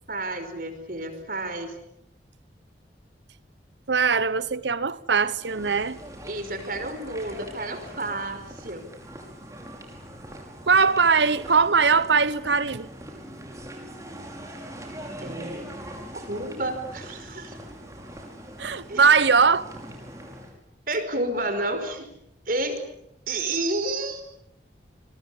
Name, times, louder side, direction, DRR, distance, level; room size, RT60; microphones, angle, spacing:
voice 1, 0.1-1.8 6.2-8.9 15.2-15.6 16.1-17.6 18.9-19.0 20.9-22.1 22.5-22.8 23.3-24.2, right 2 dB, 50° right, 5.3 m, -30 dB
voice 2, 3.9-6.0 10.7-12.9 18.6-19.7, right 5 dB, 85° right, 1.0 m, -21 dB
sound 1, 5.3-20.5, equal, 20° right, 5.7 m, -42 dB
27.5 x 24.0 x 8.5 m
head